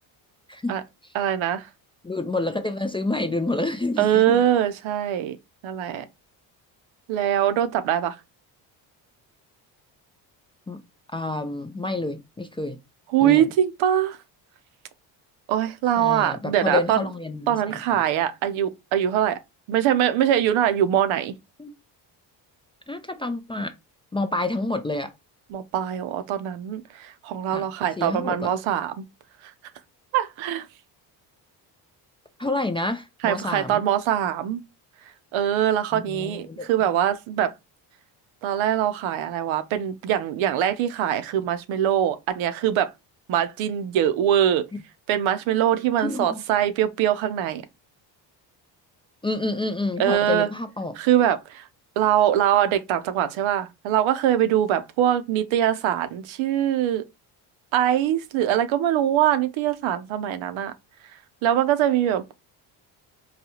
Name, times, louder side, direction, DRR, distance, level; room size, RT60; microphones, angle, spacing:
voice 1, 1.1-1.7 4.0-5.4 5.6-6.0 7.1-8.2 13.1-14.2 15.5-17.0 17.5-19.4 19.7-21.4 25.5-29.0 30.1-30.7 33.2-34.6 35.3-37.5 38.4-42.9 43.3-44.6 45.1-47.6 50.0-50.5 51.0-51.7 52.0-57.0 57.7-60.7 61.4-62.3, right 10 dB, 75° right, 0.7 m, -23 dB
voice 2, 2.0-4.4 10.7-10.8 11.1-12.8 13.2-13.5 16.0-17.6 17.9-18.0 21.6-21.7 22.9-23.7 24.1-25.1 27.5-27.7 28.0-28.5 32.4-33.8 35.9-36.7 46.0-46.4 49.2-51.0, left 2 dB, 10° left, 0.4 m, -28 dB
4.0 x 2.3 x 2.9 m
supercardioid pair, 75°, 48 cm